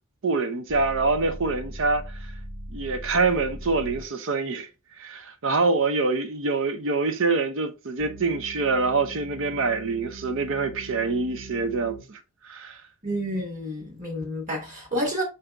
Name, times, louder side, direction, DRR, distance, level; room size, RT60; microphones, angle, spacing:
voice 1, 0.2-2.2 2.7-4.7 5.0-12.2 12.4-12.8, right 3 dB, 60° right, 0.7 m, -25 dB
sound 1, 0.7-4.1 8.0-12.0, right 1 dB, 20° right, 1.0 m, -40 dB
voice 2, 13.0-15.2, equal, 35° right, 1.7 m, -29 dB
5.2 x 2.7 x 3.4 m
head